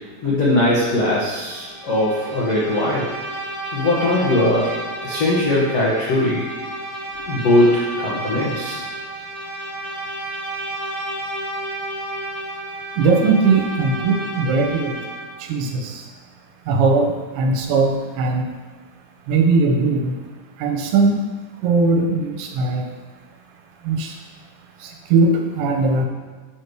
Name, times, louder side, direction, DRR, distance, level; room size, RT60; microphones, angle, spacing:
voice 1, 0.2-3.1 3.7-4.8 5.0-6.4 7.3-8.8, left 1 dB, 80° left, -7 dB, 1.4 m, -20 dB
Bowed string instrument, 1.5-15.4, right 1 dB, 40° left, 4.0 m, -31 dB
voice 2, 13.0-15.0 15.4-16.0 16.7-18.5 19.3-20.2 20.6-21.2 21.6-22.8 23.8-24.1 24.8-26.1, right 3 dB, 75° right, 2 dB, 3.1 m, -19 dB
8.4 x 6.5 x 4.7 m, 1.4 s
omnidirectional pair, 5.4 m